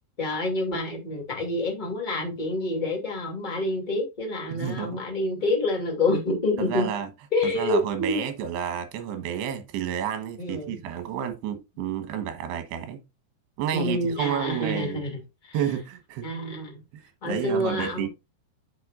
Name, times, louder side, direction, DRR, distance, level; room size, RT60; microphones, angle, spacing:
voice 1, 0.2-6.9 7.3-8.2 10.4-10.8 13.7-15.6 16.2-16.8 17.2-18.1, left 2 dB, 20° left, 1.4 m, -27 dB
voice 2, 4.5-5.0 6.6-7.1 7.5-13.0 13.6-15.0 15.5-16.3 16.9-18.1, right 9 dB, 75° right, 3.2 m, -30 dB
7.7 x 6.8 x 2.4 m
omnidirectional pair, 4.8 m